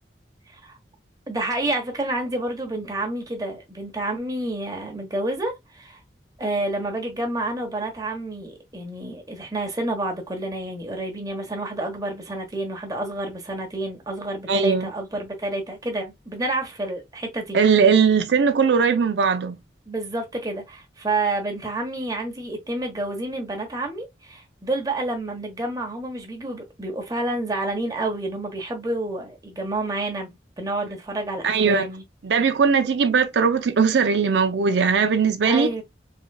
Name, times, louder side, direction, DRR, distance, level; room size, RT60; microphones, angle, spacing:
voice 1, 1.3-6.0 6.4-17.6 19.9-30.3 30.6-32.0 35.4-35.8, right 2 dB, 20° right, 1.0 m, -29 dB
voice 2, 14.5-14.9 17.5-19.6 31.4-31.8 32.2-35.7, right 5 dB, 75° right, 0.5 m, -19 dB
3.6 x 3.1 x 2.2 m
head